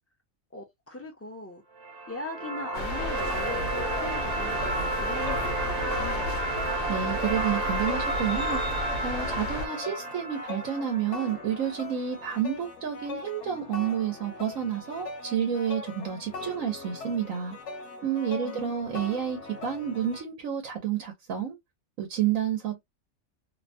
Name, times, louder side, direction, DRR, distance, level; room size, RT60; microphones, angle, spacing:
voice 1, 0.5-1.6 2.1-6.4 18.4-18.7, left 2 dB, 20° left, 0.4 m, -40 dB
sound 1, 1.8-11.8, right 2 dB, 75° right, 0.3 m, -32 dB
sound 2, 2.7-9.7, left 2 dB, 45° left, 0.8 m, -33 dB
sound 3, 2.9-20.2, left 3 dB, 65° left, 1.1 m, -41 dB
voice 2, 6.9-8.6 9.0-17.6 18.0-21.6 22.0-22.8, right 9 dB, 90° right, 1.2 m, -30 dB
2.8 x 2.1 x 2.6 m
omnidirectional pair, 1.4 m